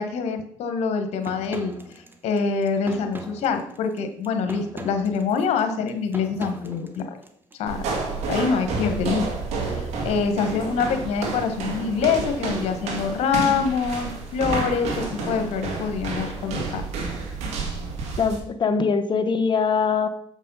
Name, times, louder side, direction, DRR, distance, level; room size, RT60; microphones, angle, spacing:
voice 1, 0.0-7.2 7.6-7.8 8.3-9.3 9.6-16.8, left 5 dB, 70° left, 7 dB, 1.4 m, -25 dB
sound 1, 1.2-7.6, right 2 dB, 20° right, 1.2 m, -40 dB
sound 2, 7.7-18.4, right 4 dB, 75° right, 2.0 m, -30 dB
voice 2, 18.2-20.1, left 5 dB, 45° left, 8 dB, 1.1 m, -22 dB
7.3 x 5.4 x 5.6 m, 0.67 s
supercardioid pair, 75°, 11 cm